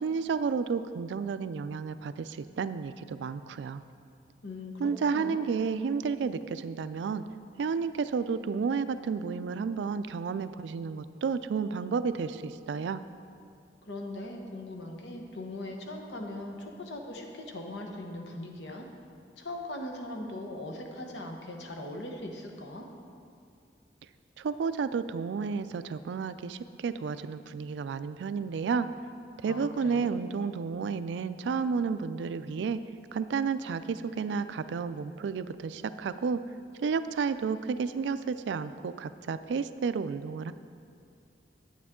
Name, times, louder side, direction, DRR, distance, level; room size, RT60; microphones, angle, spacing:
voice 1, 0.0-3.8 4.8-7.2 7.6-13.0 24.4-28.9 29.4-32.8 33.1-36.4 36.8-40.5, right 5 dB, 85° right, 13 dB, 0.3 m, -31 dB
voice 2, 4.4-5.5 13.8-18.9 19.4-22.9 29.4-30.1, left 1 dB, 85° left, 2 dB, 1.0 m, -40 dB
9.4 x 8.3 x 3.7 m, 2.4 s
head